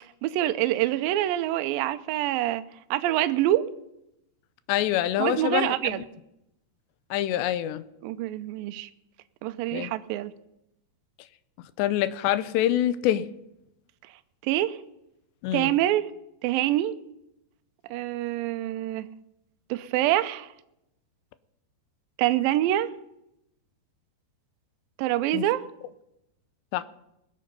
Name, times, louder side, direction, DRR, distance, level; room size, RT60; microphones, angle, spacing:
voice 1, 0.2-2.6 2.9-3.7 5.2-6.0 8.0-8.9 9.4-10.3 14.4-14.8 15.5-16.1 16.4-17.0 17.9-19.1 19.7-20.5 22.2-22.9 25.0-25.6, right 14 dB, 80° right, 2.1 m, -25 dB
voice 2, 4.7-6.0 7.1-7.9 9.7-9.9 11.8-13.3 15.4-15.7 25.3-25.4 26.7-26.8, left 12 dB, 85° left, 2.9 m, -25 dB
21.5 x 7.8 x 5.3 m
omnidirectional pair, 5.0 m